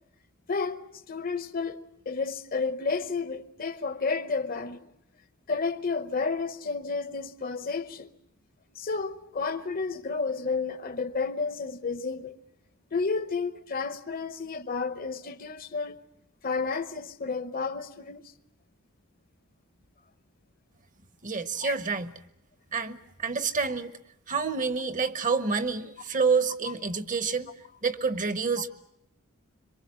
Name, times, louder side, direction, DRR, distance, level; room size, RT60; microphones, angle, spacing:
voice 1, 0.5-4.9 5.5-8.1 8.8-12.4 12.9-16.0 16.4-18.3 21.6-21.8, left 4 dB, 40° left, 0.9 m, -31 dB
voice 2, 21.2-22.1 22.7-23.9 24.3-27.5 27.8-28.7, right 5 dB, 35° right, 1.0 m, -28 dB
26.5 x 23.5 x 7.5 m
head